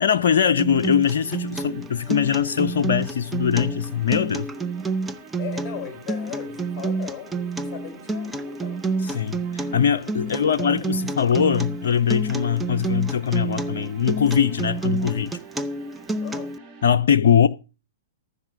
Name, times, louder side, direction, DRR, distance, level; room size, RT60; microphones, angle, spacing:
voice 1, 0.0-4.5 9.0-15.4 16.8-17.5, left 8 dB, 65° left, 0.5 m, -21 dB
Acoustic guitar, 0.6-16.6, right 3 dB, 10° right, 0.9 m, -29 dB
sound 1, 1.1-16.9, right 5 dB, 25° right, 2.9 m, -46 dB
voice 2, 5.4-8.8 10.2-10.9 16.2-16.5, left 10 dB, 25° left, 4.8 m, -38 dB
14.5 x 7.0 x 6.2 m
figure-of-eight pair, 110°, 0 cm